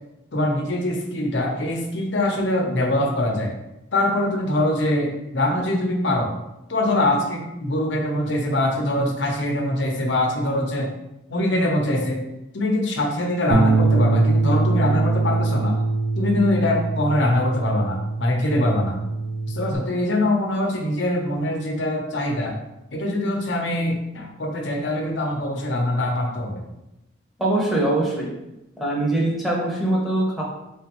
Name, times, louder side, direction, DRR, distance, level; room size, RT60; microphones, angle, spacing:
voice 1, 0.3-3.5 3.9-6.3 6.7-10.9 11.3-12.2 12.5-15.8 16.2-19.0 19.5-22.5 22.9-26.6, left 1 dB, 70° left, 1 dB, 0.8 m, -23 dB
Bass guitar, 13.5-19.8, right 3 dB, 80° right, 0.5 m, -22 dB
voice 2, 27.4-28.3 28.8-30.4, right 1 dB, ahead, -5 dB, 0.8 m, -22 dB
4.3 x 3.3 x 3.0 m, 0.93 s
head